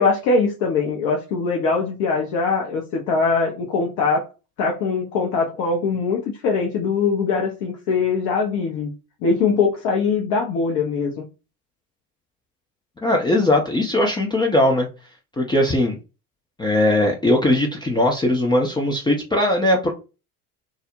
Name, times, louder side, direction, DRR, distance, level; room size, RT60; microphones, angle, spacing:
voice 1, 0.0-4.3 4.6-8.9 9.2-11.2, left 4 dB, 55° left, 0.8 m, -22 dB
voice 2, 13.0-14.9 15.4-15.9 16.6-19.9, left 1 dB, 10° left, 0.4 m, -19 dB
2.4 x 2.0 x 2.8 m
hypercardioid pair, 65°, 46 cm